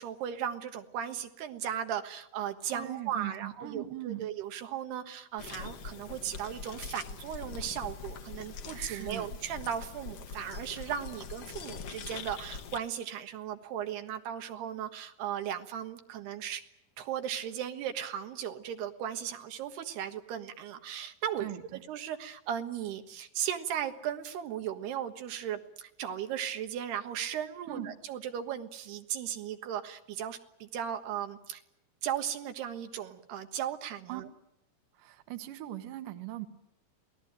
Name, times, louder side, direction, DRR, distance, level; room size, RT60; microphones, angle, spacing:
voice 1, 0.0-16.6 17.0-21.5 21.7-31.6 32.0-34.3, right 9 dB, 85° right, 6 dB, 3.6 m, -36 dB
voice 2, 2.7-4.3 8.7-9.3 21.4-21.8 27.7-27.9 34.1-34.2 34.9-36.5, right 13 dB, 65° right, 9 dB, 2.7 m, -40 dB
sound 1, 5.4-12.8, left 5 dB, 60° left, 1.6 m, -43 dB
27.5 x 19.0 x 8.9 m, 0.80 s
omnidirectional pair, 4.6 m